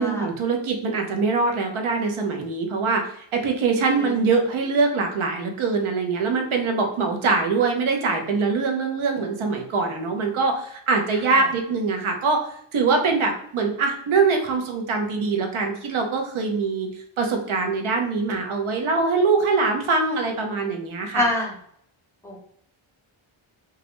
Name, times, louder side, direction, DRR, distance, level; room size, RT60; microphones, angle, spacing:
voice 1, 0.0-16.9 17.2-21.3, right 4 dB, 75° right, 2 dB, 0.7 m, -23 dB
voice 2, 21.1-21.5 22.2-22.4, left 1 dB, 5° left, -2 dB, 0.4 m, -26 dB
2.4 x 2.0 x 2.9 m, 0.65 s
wide cardioid pair, 175°, 49 cm